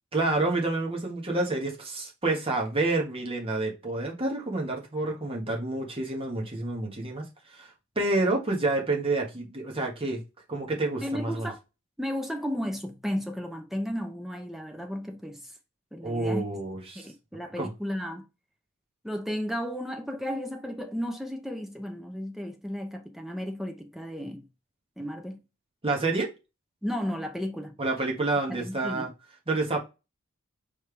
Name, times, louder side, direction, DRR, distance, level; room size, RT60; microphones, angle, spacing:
voice 1, 0.1-7.2 7.5-7.7 7.9-10.2 10.5-11.5 16.0-17.1 17.6-17.7 25.8-26.3 27.8-29.1 29.5-29.8, right 2 dB, 25° right, 1.4 m, -28 dB
voice 2, 11.0-11.6 12.0-15.4 15.9-16.4 16.9-18.3 19.0-24.4 25.0-25.4 26.8-27.8 28.5-29.1, equal, ahead, 0.7 m, -34 dB
4.4 x 3.3 x 3.3 m
head